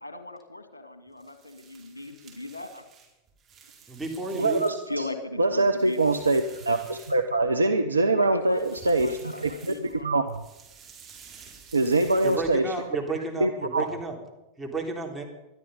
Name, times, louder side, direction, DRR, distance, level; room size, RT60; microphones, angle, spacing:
voice 1, 0.0-2.8 4.9-6.0 8.1-10.3, left 2 dB, 80° left, 9 dB, 1.9 m, -38 dB
sound 1, 1.1-5.0 5.4-7.6 8.4-10.0 10.3-12.8, right 6 dB, 25° right, 4.4 m, -51 dB
voice 2, 3.9-4.6 12.2-14.2 14.6-15.2, right 3 dB, 5° right, -1 dB, 3.4 m, -32 dB
voice 3, 4.4-5.1 5.4-9.5 9.8-10.4 11.7-12.7 13.4-13.9, right 2 dB, 80° right, 6 dB, 0.8 m, -24 dB
20.0 x 12.5 x 5.4 m, 0.98 s
figure-of-eight pair, 90°, 0 cm